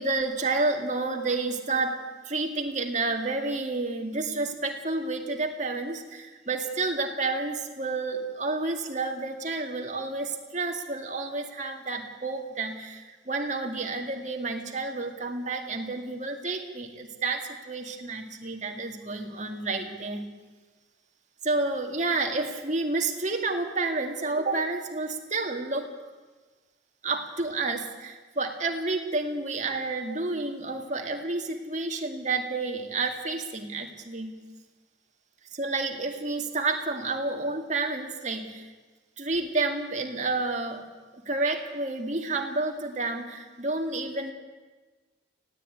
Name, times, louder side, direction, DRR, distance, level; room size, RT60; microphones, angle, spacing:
voice 1, 0.0-20.3 21.4-25.9 27.0-34.4 35.5-38.7 39.2-40.8 41.3-44.3, right 3 dB, 35° right, 3 dB, 2.2 m, -30 dB
19.0 x 16.5 x 9.3 m, 1.3 s
head